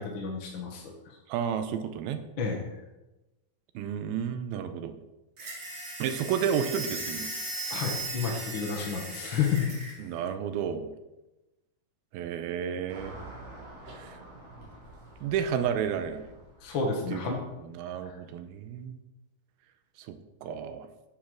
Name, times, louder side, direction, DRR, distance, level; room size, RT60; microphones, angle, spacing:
voice 1, 0.0-1.2 2.4-2.7 7.7-9.7 16.6-17.4 18.0-18.2, left 6 dB, 55° left, 0 dB, 1.4 m, -31 dB
voice 2, 1.3-2.2 3.8-4.9 6.0-7.3 10.0-10.9 12.1-13.2 13.9-14.2 15.2-16.3 17.1-19.0 20.1-20.2 20.4-20.9, right 8 dB, 85° right, 9 dB, 2.7 m, -31 dB
sound 1, 5.4-10.0, right 2 dB, 40° right, 2.4 m, -37 dB
Car passing by / Traffic noise roadway noise, 12.9-17.5, right 2 dB, 55° right, 4.5 m, -48 dB
9.7 x 7.2 x 6.4 m, 1.0 s
omnidirectional pair, 4.3 m